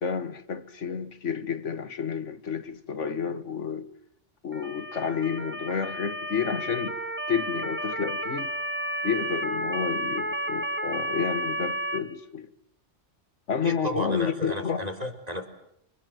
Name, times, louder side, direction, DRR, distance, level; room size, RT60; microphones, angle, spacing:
voice 1, 0.0-3.9 4.4-7.0 7.3-8.5 9.0-12.5 13.5-14.8, left 6 dB, 75° left, 1.7 m, -30 dB
Motor vehicle (road) / Siren, 4.5-12.0, right 1 dB, 10° right, 1.7 m, -32 dB
voice 2, 13.6-15.5, equal, 30° right, 4.1 m, -33 dB
30.0 x 26.0 x 7.7 m
omnidirectional pair, 1.3 m